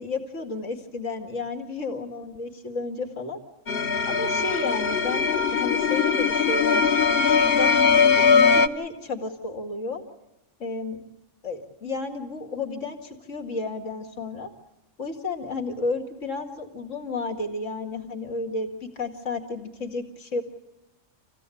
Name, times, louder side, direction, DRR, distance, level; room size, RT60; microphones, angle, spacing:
voice 1, 0.0-3.4 4.1-6.8 7.2-10.0 10.6-11.1 11.4-14.5 15.0-20.4, left 3 dB, 85° left, 4 dB, 2.6 m, -32 dB
sound 1, 3.7-8.7, left 5 dB, 55° left, 1.1 m, -20 dB
27.0 x 16.0 x 8.4 m, 0.98 s
omnidirectional pair, 1.3 m